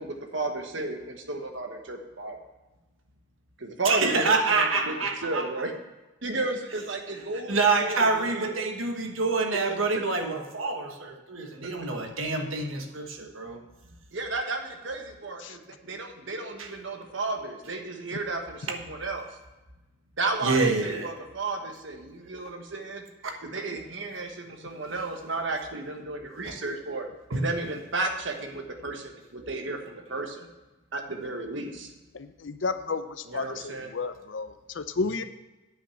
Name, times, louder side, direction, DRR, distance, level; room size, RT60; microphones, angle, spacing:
voice 1, 0.0-2.4 3.6-5.0 5.2-5.8 6.2-8.6 9.5-10.0 11.6-11.7 14.1-19.3 20.2-23.0 23.4-27.1 27.3-30.5 30.9-31.9 33.3-33.9, right 2 dB, 70° right, 4 dB, 1.4 m, -33 dB
voice 2, 3.8-5.4 7.5-13.6 16.6-16.7 20.4-21.1 23.2-23.3 27.3-27.4, right 3 dB, 85° right, 4 dB, 1.4 m, -26 dB
voice 3, 32.1-35.2, left 4 dB, 70° left, 11 dB, 0.6 m, -32 dB
9.5 x 5.8 x 7.1 m, 1.1 s
head